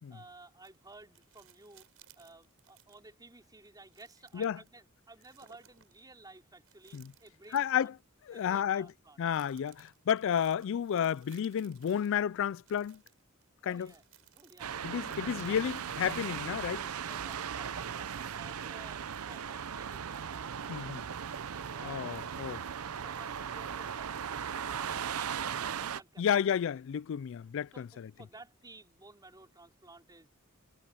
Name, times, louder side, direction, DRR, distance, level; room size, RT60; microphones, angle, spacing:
voice 1, 0.1-1.9 2.2-7.9 8.3-9.2 13.6-14.0 14.3-15.6 17.0-21.0 21.5-22.4 23.0-26.3 27.7-30.3, right 2 dB, 20° right, 4.3 m, -55 dB
Plastic bag rustle handling crinkle, 0.6-3.1 3.6-4.7 5.2-6.0 6.6-7.9 8.5-8.7 9.3-12.2 12.7-16.4 17.0-17.7 18.3-18.4, right 10 dB, 70° right, 7.1 m, -63 dB
voice 2, 7.5-7.9 8.3-8.9 9.2-13.0 13.6-13.9 14.8-16.9 20.7-21.0 21.8-22.6 26.2-27.9, left 8 dB, 60° left, 0.3 m, -31 dB
sound 1, 14.6-26.0, right 7 dB, 85° right, 0.6 m, -38 dB
head